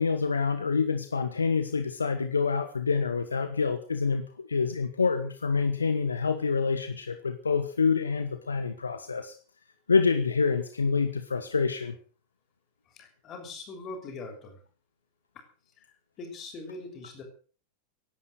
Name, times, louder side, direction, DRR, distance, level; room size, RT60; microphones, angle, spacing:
voice 1, 0.0-9.3 9.9-11.9, left 5 dB, 75° left, 9 dB, 1.3 m, -27 dB
voice 2, 12.9-14.6 15.8-15.9 16.2-17.2, left 3 dB, 30° left, 3 dB, 6.3 m, -42 dB
17.5 x 11.5 x 6.5 m, 0.41 s
figure-of-eight pair, 90°, 0 cm